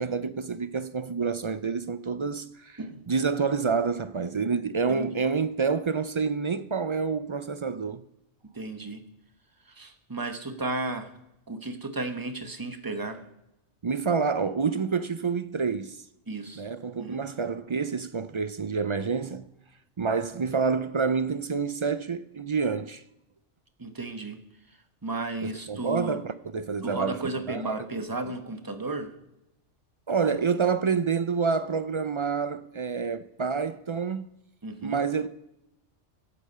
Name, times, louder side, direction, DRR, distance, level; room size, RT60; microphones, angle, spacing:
voice 1, 0.0-2.8 3.1-8.0 13.8-16.0 16.6-19.5 20.0-23.0 25.4-27.2 27.5-27.9 30.1-34.3 34.8-35.3, right 5 dB, 50° right, 0.3 m, -28 dB
voice 2, 8.5-9.0 9.7-11.1 11.5-13.2 16.3-16.7 17.0-17.2 23.8-24.4 24.7-26.2 26.8-29.1 34.6-35.0, right 2 dB, 20° right, 1.3 m, -34 dB
23.5 x 8.4 x 5.6 m
omnidirectional pair, 1.2 m